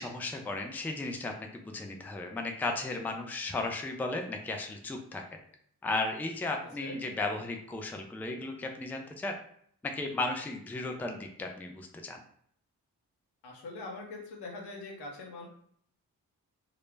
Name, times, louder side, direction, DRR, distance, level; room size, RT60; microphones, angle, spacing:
voice 1, 0.0-5.2 5.8-9.3 9.8-12.2, left 2 dB, 5° left, 4 dB, 0.3 m, -35 dB
voice 2, 13.4-15.5, left 3 dB, 85° left, 0 dB, 0.7 m, -42 dB
2.0 x 2.0 x 3.2 m, 0.64 s
cardioid pair, 45°, 40 cm